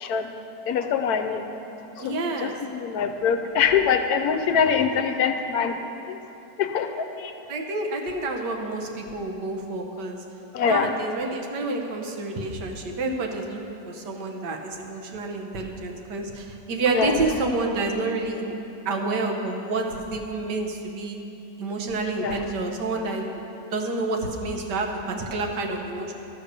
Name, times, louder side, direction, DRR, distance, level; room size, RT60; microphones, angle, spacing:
voice 1, 0.7-1.4 2.0-2.1 2.4-5.7 6.1-6.2 6.6-6.9 7.2-7.3 10.5-10.9 16.9-17.2 22.2-22.4, left 7 dB, 70° left, 7 dB, 1.1 m, -23 dB
voice 2, 2.0-2.6 7.5-10.2 10.6-18.5 18.9-21.2 21.6-23.4 23.7-26.1, right 2 dB, 75° right, 2 dB, 1.6 m, -29 dB
12.0 x 6.4 x 6.7 m, 2.8 s
omnidirectional pair, 1.9 m